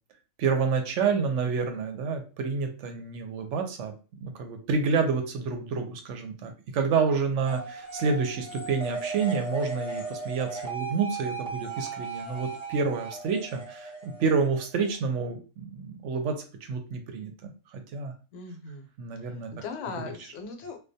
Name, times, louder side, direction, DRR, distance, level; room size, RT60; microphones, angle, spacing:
voice 1, 0.4-3.9 4.2-18.1 19.0-19.5 20.0-20.1, right 5 dB, 75° right, 5 dB, 0.9 m, -29 dB
sound 1, 7.5-14.9, right 4 dB, 5° right, 0.5 m, -37 dB
voice 2, 18.3-18.9 19.2-20.8, left 4 dB, 75° left, 4 dB, 0.9 m, -39 dB
2.2 x 2.2 x 2.6 m, 0.35 s
omnidirectional pair, 1.3 m